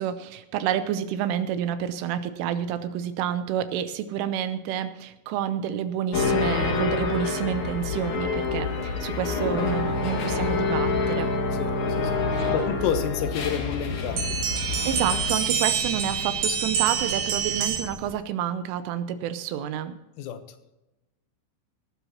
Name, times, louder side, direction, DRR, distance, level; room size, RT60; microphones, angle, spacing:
voice 1, 0.0-11.3 12.3-12.5 14.8-20.0, right 9 dB, 80° right, 11 dB, 3.1 m, -29 dB
sound 1, 6.1-15.4, left 4 dB, 55° left, 2.2 m, -27 dB
voice 2, 12.5-14.4 20.2-20.4, left 8 dB, 90° left, 8 dB, 3.9 m, -29 dB
sound 2, 14.2-18.1, right 7 dB, 60° right, 3.3 m, -26 dB
18.0 x 13.0 x 2.9 m, 0.98 s
omnidirectional pair, 5.9 m